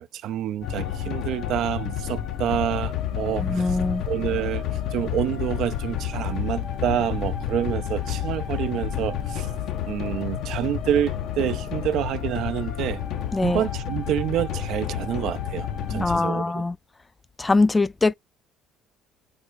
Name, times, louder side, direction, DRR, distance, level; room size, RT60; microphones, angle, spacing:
voice 1, 0.0-3.8 4.1-4.6 4.9-9.5 9.8-13.0 13.4-16.4, right 11 dB, 65° right, 0.3 m, -27 dB
sound 1, 0.6-16.2, left 9 dB, 65° left, 0.6 m, -30 dB
voice 2, 3.4-4.0 13.3-13.6 15.9-16.8 17.4-18.1, left 3 dB, 20° left, 0.3 m, -22 dB
3.4 x 2.1 x 3.2 m
supercardioid pair, 70°, 0 cm